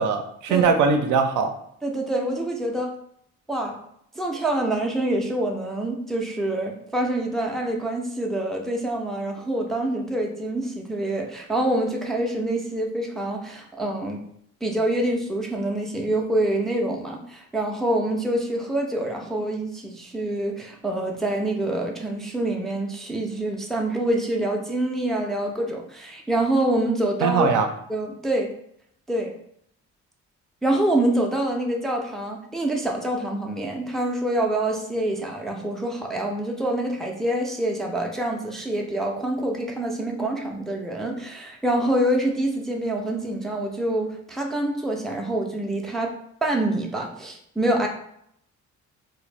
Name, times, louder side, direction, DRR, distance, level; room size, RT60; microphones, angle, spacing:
voice 1, 0.0-1.5 27.2-27.7, right 5 dB, 75° right, 5 dB, 0.4 m, -21 dB
voice 2, 1.8-2.9 3.5-3.8 4.2-14.2 14.6-27.5 27.9-28.5 29.1-29.3 30.6-46.1 46.4-47.9, right 1 dB, ahead, 1 dB, 0.3 m, -26 dB
2.1 x 2.0 x 3.1 m, 0.70 s
cardioid pair, 90°, 30 cm